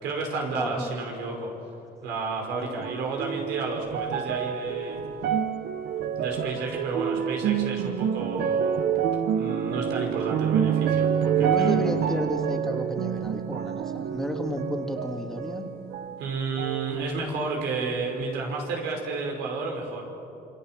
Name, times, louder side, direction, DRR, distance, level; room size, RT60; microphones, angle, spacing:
voice 1, 0.0-1.5 2.0-5.0 6.2-8.9 9.3-11.9 16.2-20.1, right 3 dB, 90° right, 1 dB, 5.4 m, -31 dB
voice 2, 0.5-0.9 2.6-2.9 3.3-3.4 11.3-15.6, left 1 dB, ahead, 2 dB, 2.5 m, -32 dB
sound 1, 2.8-16.2 16.6-17.5 18.2-18.3, right 8 dB, 70° right, 1.1 m, -28 dB
27.0 x 24.0 x 7.7 m, 2.8 s
cardioid pair, 110°, 17 cm